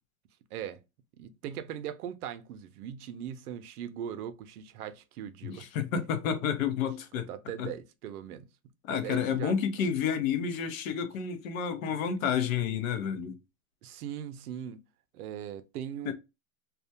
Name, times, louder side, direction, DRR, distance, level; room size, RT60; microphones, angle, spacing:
voice 1, 1.2-6.0 7.1-8.4 8.9-9.6 13.8-14.8 15.1-16.1, right 9 dB, 85° right, 0.6 m, -40 dB
voice 2, 5.4-7.3 7.6-7.7 8.9-13.4 16.1-16.2, left 7 dB, 65° left, 0.7 m, -30 dB
2.3 x 2.1 x 2.6 m
supercardioid pair, 135°, 43 cm